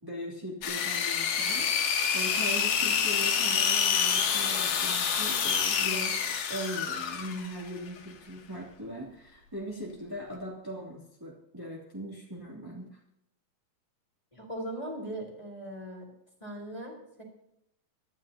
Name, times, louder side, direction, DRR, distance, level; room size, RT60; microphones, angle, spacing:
voice 1, 0.0-6.2 6.5-13.0, equal, 5° right, -5 dB, 2.5 m, -40 dB
sound 1, 0.6-7.6, left 7 dB, 75° left, 3.1 m, -27 dB
voice 2, 14.3-16.1 16.4-17.2, right 1 dB, 10° left, -1 dB, 3.8 m, -39 dB
26.5 x 13.0 x 2.9 m, 0.78 s
omnidirectional pair, 4.0 m